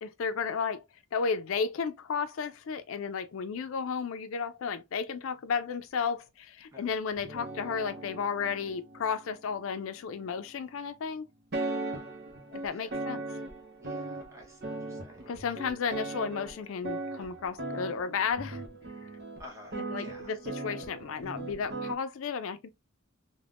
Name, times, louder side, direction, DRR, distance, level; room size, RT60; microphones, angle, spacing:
voice 1, 0.0-0.8 1.1-11.3 12.5-13.2 15.3-18.6 19.7-22.7, left 6 dB, 75° left, 0.4 m, -33 dB
sound 1, 7.2-10.7 11.5-22.0, right 2 dB, 50° right, 0.7 m, -39 dB
voice 2, 11.7-12.1 12.7-13.0 13.8-15.3 19.4-20.3, left 1 dB, 15° right, 0.9 m, -51 dB
3.4 x 2.1 x 2.3 m
head